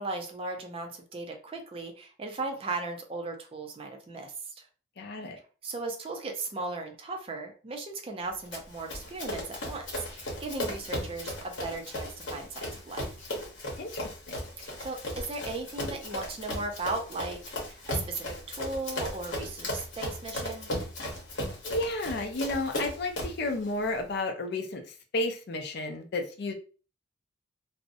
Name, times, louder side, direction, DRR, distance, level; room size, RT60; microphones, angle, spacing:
voice 1, 0.0-4.7 5.6-9.9 10.1-13.3 14.6-20.7, right 3 dB, 30° right, 3 dB, 0.4 m, -37 dB
voice 2, 5.0-5.4 13.8-14.4 21.6-24.8 25.1-26.5, left 2 dB, 55° left, 4 dB, 0.4 m, -32 dB
Run, 8.5-23.5, left 1 dB, 70° left, 0.9 m, -36 dB
2.5 x 2.0 x 2.5 m, 0.37 s
head